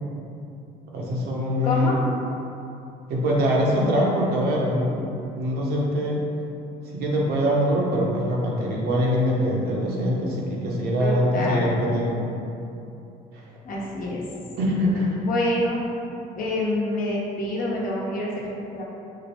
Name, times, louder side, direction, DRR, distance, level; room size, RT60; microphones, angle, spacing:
voice 1, 0.9-1.9 3.1-5.0 5.4-6.2 6.9-12.2 13.3-13.4 14.6-15.2, equal, 70° right, -3 dB, 0.9 m, -23 dB
voice 2, 1.6-1.9 11.0-11.7 13.6-14.2 15.2-15.8 16.4-18.8, left 1 dB, 55° left, -4 dB, 1.0 m, -27 dB
4.9 x 2.2 x 4.2 m, 2.7 s
cardioid pair, 110°, 17 cm